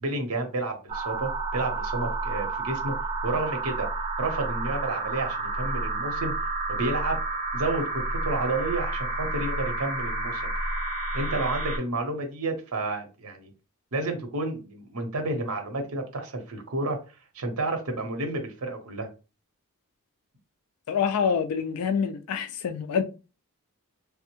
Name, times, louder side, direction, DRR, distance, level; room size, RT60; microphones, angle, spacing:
voice 1, 0.0-2.9 3.2-3.9 4.2-6.3 6.7-7.2 7.5-10.7 11.1-13.5 13.9-17.0 17.3-19.1, right 2 dB, 80° right, 0.8 m, -30 dB
sound 1, 0.9-11.8, right 2 dB, 35° right, 0.8 m, -30 dB
voice 2, 20.9-23.0, left 6 dB, 75° left, 0.4 m, -26 dB
3.3 x 2.1 x 2.9 m
head